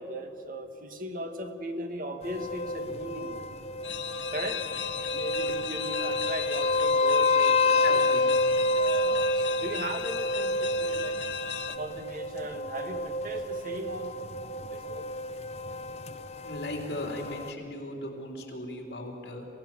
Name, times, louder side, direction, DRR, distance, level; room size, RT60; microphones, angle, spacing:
voice 1, 0.0-3.5 4.3-4.6 5.1-8.0 8.7-11.2 11.7-14.3 14.6-15.0, right 1 dB, 50° right, 6 dB, 1.6 m, -38 dB
sound 1, 2.2-17.5, left 2 dB, 35° left, 0.8 m, -29 dB
sound 2, 3.8-11.8, left 9 dB, 90° left, 0.8 m, -36 dB
voice 2, 7.8-8.2 16.4-19.5, left 1 dB, 60° left, 1 dB, 3.5 m, -37 dB
27.5 x 16.0 x 7.5 m, 2.7 s
head